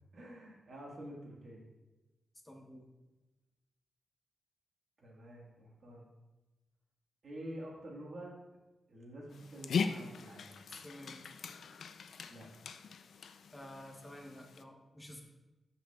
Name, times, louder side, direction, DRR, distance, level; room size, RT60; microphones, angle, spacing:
voice 1, 0.1-1.6 5.0-6.1 7.2-8.4 8.9-10.5 12.3-12.5, right 1 dB, 45° right, -2 dB, 1.5 m, -48 dB
voice 2, 2.4-2.9 10.7-11.2 13.5-15.2, left 1 dB, 10° left, 2 dB, 0.9 m, -51 dB
Dog, 9.3-14.6, left 5 dB, 70° left, 0.3 m, -40 dB
13.0 x 5.7 x 2.3 m, 1.1 s
wide cardioid pair, 180°, 0 cm